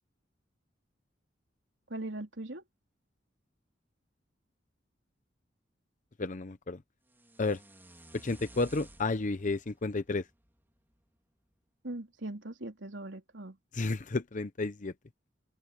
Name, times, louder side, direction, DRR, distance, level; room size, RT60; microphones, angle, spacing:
voice 1, 1.9-2.6 11.8-13.6, right 1 dB, 85° right, 3.6 m, -40 dB
voice 2, 6.2-6.8 7.4-7.6 8.2-10.2 13.7-14.9, left 3 dB, 45° left, 0.8 m, -32 dB
sound 1, 7.1-11.2, right 1 dB, 10° right, 3.2 m, -55 dB
open air
head